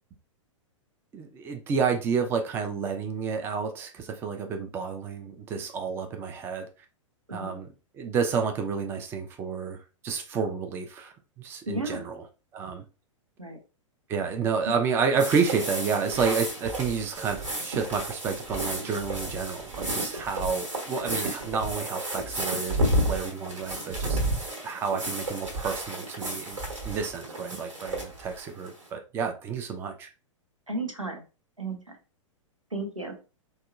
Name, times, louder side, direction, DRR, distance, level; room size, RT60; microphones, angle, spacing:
voice 1, 1.1-6.7 7.3-7.7 7.9-12.2 12.5-12.8 14.1-24.2 24.6-26.6 26.8-30.1, right 5 dB, 15° right, 0.3 m, -30 dB
voice 2, 11.7-12.1 13.4-13.6 14.7-14.8 30.7-31.2 31.6-32.0 32.7-33.2, right 2 dB, 90° right, 0.7 m, -33 dB
sound 1, 15.2-28.8, right 1 dB, 70° right, 1.2 m, -32 dB
3.5 x 2.1 x 2.3 m
figure-of-eight pair, 105°, 16 cm